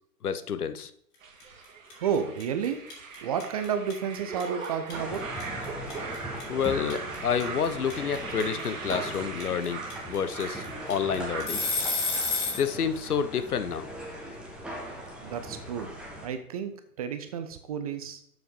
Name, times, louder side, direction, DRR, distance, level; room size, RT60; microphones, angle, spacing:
voice 1, 0.2-0.9 6.5-9.8 10.1-11.6 12.5-13.9, left 7 dB, 70° left, 11 dB, 0.9 m, -29 dB
sound 1, 1.2-11.5, right 4 dB, 60° right, 2.0 m, -40 dB
sound 2, 1.4-1.6 1.9-12.7, left 3 dB, 30° left, 3.1 m, -30 dB
voice 2, 2.0-2.8 3.2-5.2 15.2-15.9 16.2-18.2, right 7 dB, 25° right, 9 dB, 0.5 m, -31 dB
sound 3, 4.9-16.3, equal, ahead, 1.5 m, -39 dB
7.4 x 5.8 x 5.3 m, 0.66 s
figure-of-eight pair, 120°, 46 cm